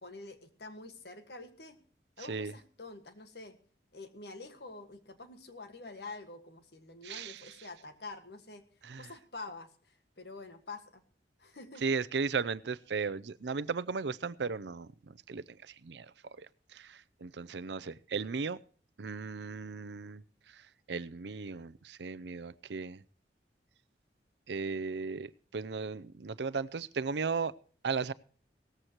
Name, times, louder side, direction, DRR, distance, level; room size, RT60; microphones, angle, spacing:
voice 1, 0.0-1.8 2.2-3.6 3.9-8.7 9.0-11.0 11.4-11.8, left 3 dB, 70° left, 9 dB, 1.6 m, -47 dB
voice 2, 7.0-7.5 8.8-9.1 11.8-16.1 16.7-18.6 19.0-20.2 20.9-23.0 24.5-27.5 27.8-28.1, right 5 dB, 75° right, 19 dB, 0.5 m, -36 dB
17.5 x 14.5 x 3.0 m, 0.43 s
head